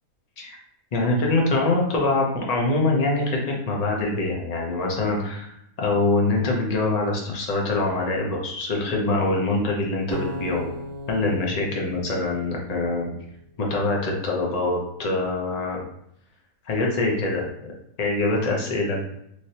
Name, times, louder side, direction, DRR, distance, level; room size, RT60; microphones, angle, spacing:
voice 1, 0.9-10.7 11.1-13.1 13.6-15.8 16.7-17.5 18.0-19.0, left 2 dB, 45° left, -1 dB, 0.5 m, -24 dB
sound 1, 10.1-13.3, equal, 60° right, 0.7 m, -37 dB
3.2 x 2.7 x 2.7 m, 0.74 s
omnidirectional pair, 1.5 m